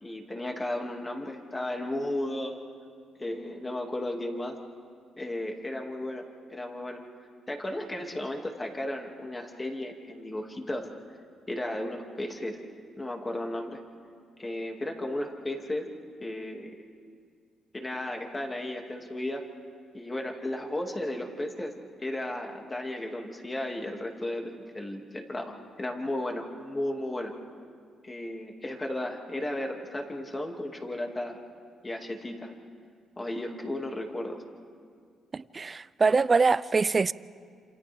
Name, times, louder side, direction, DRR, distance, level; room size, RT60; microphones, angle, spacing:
voice 1, 0.0-2.6 3.2-4.6 5.2-7.0 7.5-10.9 11.5-12.6 13.0-13.8 14.4-15.9 16.2-16.7 17.7-19.5 19.9-21.7 22.0-27.3 28.0-31.4 31.8-32.5 33.2-34.4, left 1 dB, 20° left, 2.3 m, -34 dB
voice 2, 35.3-37.1, right 4 dB, 30° right, 0.4 m, -24 dB
28.0 x 27.0 x 3.5 m
cardioid pair, 90°, 0 cm